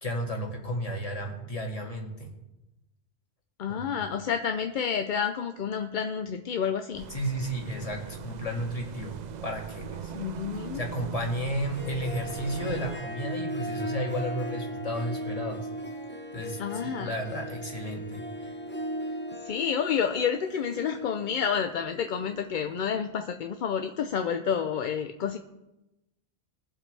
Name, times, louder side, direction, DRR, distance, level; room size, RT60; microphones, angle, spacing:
voice 1, 0.0-2.3 3.7-4.0 7.1-9.2 9.4-10.1 10.7-15.7 16.3-18.5, equal, 35° left, 0 dB, 2.1 m, -33 dB
voice 2, 3.6-7.1 10.1-10.8 16.6-17.1 19.4-25.4, left 7 dB, 55° left, 6 dB, 0.6 m, -29 dB
sound 1, 6.9-13.0, right 6 dB, 55° right, 0.5 m, -40 dB
Harp, 11.6-22.8, equal, 10° left, 0.9 m, -38 dB
22.0 x 7.5 x 3.3 m, 0.97 s
omnidirectional pair, 1.1 m